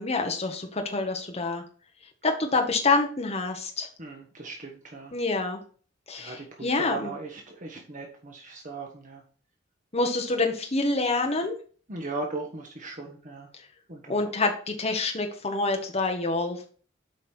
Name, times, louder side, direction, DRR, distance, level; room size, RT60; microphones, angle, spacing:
voice 1, 0.0-1.6 2.2-3.9 5.1-5.6 6.1-7.1 9.9-11.5 14.1-16.7, left 3 dB, 35° left, 3 dB, 1.3 m, -27 dB
voice 2, 4.0-5.1 6.1-9.2 11.9-13.5 13.9-14.5, right 3 dB, 45° right, 1 dB, 1.4 m, -38 dB
8.2 x 5.5 x 4.4 m, 0.41 s
head